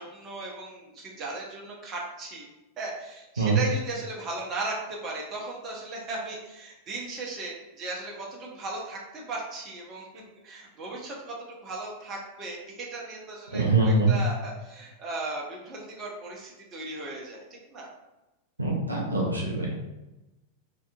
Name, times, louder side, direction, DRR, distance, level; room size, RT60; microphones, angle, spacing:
voice 1, 0.0-2.5 2.8-17.9, right 2 dB, 30° right, -2 dB, 0.6 m, -37 dB
voice 2, 13.5-14.1 18.6-19.7, right 3 dB, 80° right, -2 dB, 0.5 m, -23 dB
2.6 x 2.4 x 2.3 m, 1.0 s
figure-of-eight pair, 90°, 0 cm